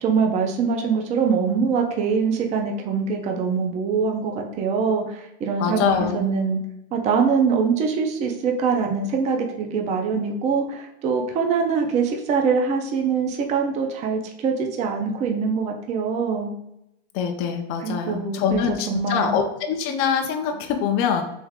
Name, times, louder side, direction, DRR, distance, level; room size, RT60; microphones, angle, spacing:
voice 1, 0.0-6.6 6.9-16.5 17.8-19.3, right 5 dB, 20° right, 3 dB, 0.4 m, -23 dB
voice 2, 5.6-6.2 17.1-21.2, left 7 dB, 40° left, 4 dB, 0.5 m, -24 dB
3.5 x 3.1 x 3.5 m, 0.82 s
supercardioid pair, 150°, 34 cm